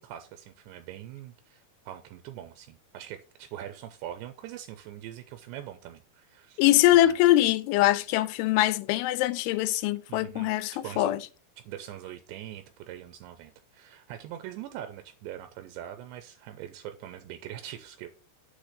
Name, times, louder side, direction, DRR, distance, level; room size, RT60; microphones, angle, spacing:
voice 1, 0.0-6.6 6.9-7.2 10.1-11.1 11.6-18.1, right 11 dB, 85° right, 2.7 m, -42 dB
voice 2, 6.6-11.2, left 15 dB, 85° left, 3.0 m, -23 dB
8.2 x 3.3 x 6.4 m
omnidirectional pair, 5.4 m